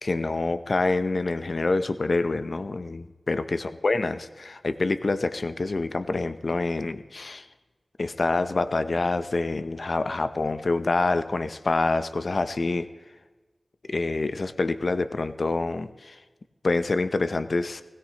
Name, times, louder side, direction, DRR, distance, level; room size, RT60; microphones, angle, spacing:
voice 1, 0.0-7.5 8.0-12.9 13.9-16.2 16.6-17.8, left 3 dB, 65° left, 11 dB, 0.6 m, -26 dB
16.5 x 16.5 x 2.9 m, 1.3 s
cardioid pair, 45°, 0 cm